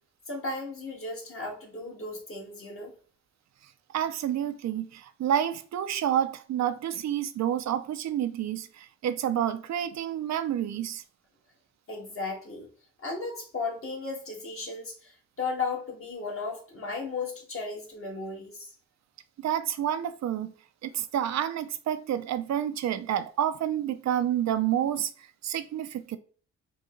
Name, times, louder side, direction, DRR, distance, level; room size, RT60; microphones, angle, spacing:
voice 1, 0.3-2.9 11.9-12.7 13.0-18.7, left 3 dB, 45° left, 1.6 m, -35 dB
voice 2, 3.9-11.0 19.4-20.5 20.8-26.2, right 10 dB, 65° right, 0.5 m, -29 dB
3.9 x 2.2 x 3.7 m
cardioid pair, 75°, 29 cm